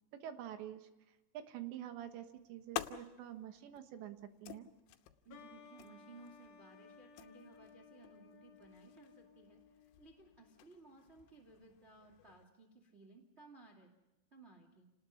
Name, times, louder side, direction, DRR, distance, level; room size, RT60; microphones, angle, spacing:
voice 1, 0.1-4.7, right 11 dB, 75° right, 8 dB, 3.4 m, -47 dB
sound 1, 2.0-12.4, left 13 dB, 90° left, 3.4 m, -51 dB
voice 2, 5.2-13.9 14.3-14.9, right 3 dB, 30° right, 1 dB, 1.2 m, -59 dB
sound 2, 5.3-10.7, left 6 dB, 55° left, 2.8 m, -60 dB
29.0 x 19.5 x 5.7 m, 1.0 s
omnidirectional pair, 5.4 m